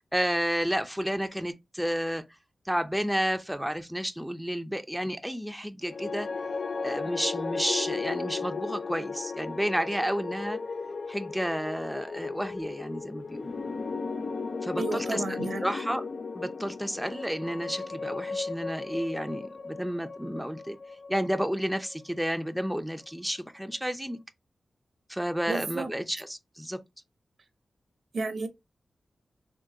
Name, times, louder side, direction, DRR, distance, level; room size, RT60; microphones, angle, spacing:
voice 1, 0.0-2.2 2.6-6.3 6.8-10.6 11.1-13.5 14.6-16.0 16.3-20.8 21.1-24.2 25.1-26.8, equal, 5° right, 0.5 m, -31 dB
sound 1, 5.8-22.1, left 4 dB, 70° left, 0.3 m, -36 dB
voice 2, 14.8-15.7 25.5-25.9 28.1-28.5, right 3 dB, 70° right, 0.7 m, -32 dB
3.7 x 2.7 x 2.6 m
cardioid pair, 55°, 0 cm